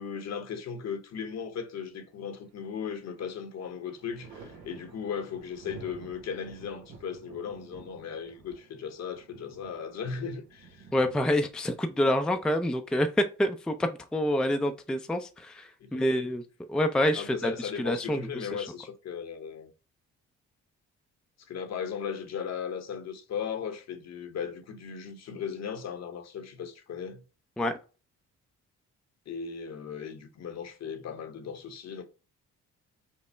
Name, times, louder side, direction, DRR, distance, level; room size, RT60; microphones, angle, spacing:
voice 1, 0.0-10.9 15.8-16.1 17.1-19.7 21.5-27.2 29.3-32.0, left 7 dB, 60° left, 0.8 m, -37 dB
Thunder, 2.4-3.2 3.5-13.1 14.6-15.5, right 4 dB, 85° right, 0.9 m, -52 dB
voice 2, 10.9-16.4 16.7-18.7 27.6-27.8, left 1 dB, 5° left, 0.4 m, -27 dB
5.4 x 2.0 x 3.3 m
cardioid pair, 90°, 30 cm